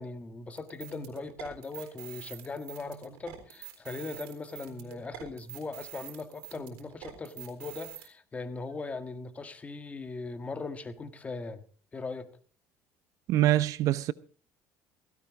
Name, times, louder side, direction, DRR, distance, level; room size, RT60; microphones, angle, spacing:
voice 1, 0.0-11.6 11.9-12.3, left 3 dB, 20° left, 1.6 m, -39 dB
sound 1, 0.6-8.1, right 15 dB, 90° right, 3.9 m, -46 dB
voice 2, 13.3-14.1, right 13 dB, 60° right, 0.8 m, -24 dB
16.5 x 16.0 x 3.7 m
cardioid pair, 115°, 6 cm